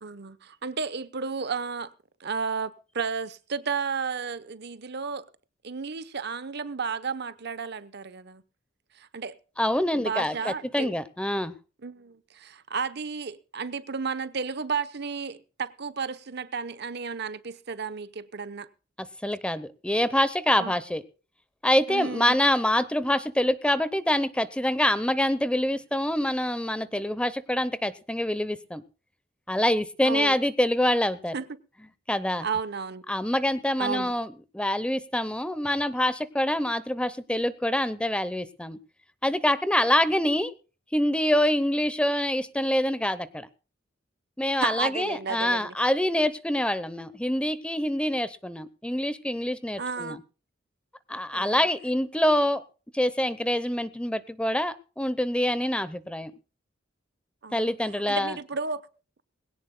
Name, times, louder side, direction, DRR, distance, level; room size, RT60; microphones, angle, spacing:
voice 1, 0.0-1.9 2.2-5.3 5.6-8.4 8.9-9.4 9.9-11.0 11.8-18.7 20.6-20.7 21.9-22.4 30.0-30.4 31.3-31.5 32.4-33.0 33.8-34.1 44.5-45.7 49.8-50.2 51.3-51.6 57.4-57.7 58.1-58.8, right 5 dB, 60° right, 0.9 m, -33 dB
voice 2, 9.6-11.5 19.0-21.0 21.6-28.8 29.5-31.3 32.1-32.5 33.1-38.8 39.2-40.5 40.9-43.5 44.4-50.2 51.1-52.6 52.9-56.3 57.5-58.4, left 1 dB, 5° left, 0.8 m, -26 dB
21.0 x 17.0 x 2.2 m
head